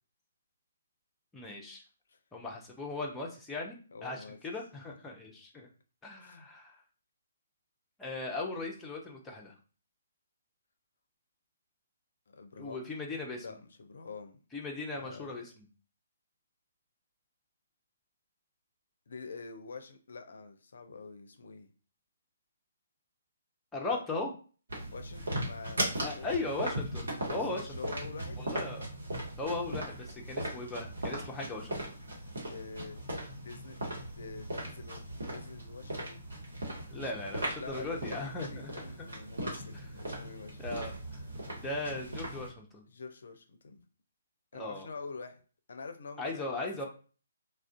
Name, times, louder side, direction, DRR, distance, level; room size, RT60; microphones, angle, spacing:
voice 1, 1.3-1.8 2.3-5.7 6.0-6.8 8.0-9.5 12.6-13.4 14.5-15.6 23.7-24.3 26.0-27.6 28.5-28.9 29.4-32.0 36.9-38.7 39.0-39.1 40.6-40.9 41.5-42.9 44.5-44.9 46.2-46.8, left 2 dB, 10° left, -1 dB, 0.5 m, -38 dB
voice 2, 3.9-4.4 6.2-6.5 12.3-12.9 13.3-14.4 14.9-15.4 19.1-21.7 23.9-24.0 24.9-26.3 27.3-28.4 32.5-33.0 33.4-33.9 34.1-36.3 37.3-40.7 42.9-43.8 44.5-45.4 45.7-46.7, left 4 dB, 60° left, 7 dB, 0.4 m, -46 dB
sound 1, 24.7-42.5, right 1 dB, 65° right, 1.0 m, -38 dB
2.4 x 2.1 x 2.4 m, 0.39 s
figure-of-eight pair, 135°, 0 cm